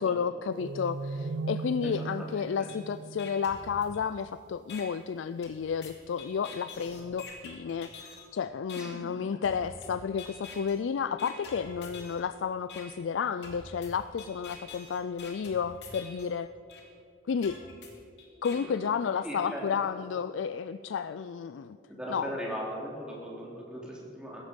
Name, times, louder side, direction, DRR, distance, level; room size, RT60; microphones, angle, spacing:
voice 1, 0.0-16.5 17.3-17.6 18.4-21.8 22.1-22.3, left 6 dB, 85° left, 12 dB, 0.4 m, -32 dB
sound 1, 0.5-4.0, right 3 dB, 70° right, 0.4 m, -38 dB
voice 2, 1.8-2.7 8.7-9.0 18.5-18.9 19.2-19.7 21.9-24.4, equal, 5° right, -4 dB, 3.2 m, -39 dB
sound 2, 2.7-2.8 3.2-4.2 4.7-4.8 5.4-8.3 8.7-8.8 9.4-9.9 10.2-10.8 11.2-12.2 12.7-12.8 13.4-16.3 16.7-16.8 17.4-18.6, left 5 dB, 65° left, 2.7 m, -46 dB
16.0 x 14.5 x 5.2 m, 2.6 s
head